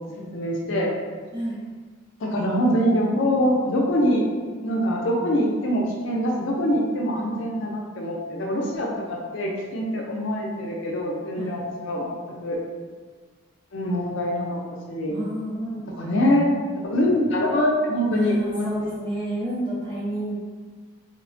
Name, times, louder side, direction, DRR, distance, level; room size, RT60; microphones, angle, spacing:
voice 1, 0.3-0.9 2.2-4.2 4.6-12.2 12.4-12.6 13.7-14.6 14.9-15.2 16.0-16.5 16.8-18.9, equal, 65° left, -1 dB, 0.4 m, -24 dB
voice 2, 15.1-16.2 18.1-20.3, right 1 dB, 25° right, -7 dB, 0.6 m, -30 dB
3.1 x 2.1 x 2.5 m, 1.5 s
head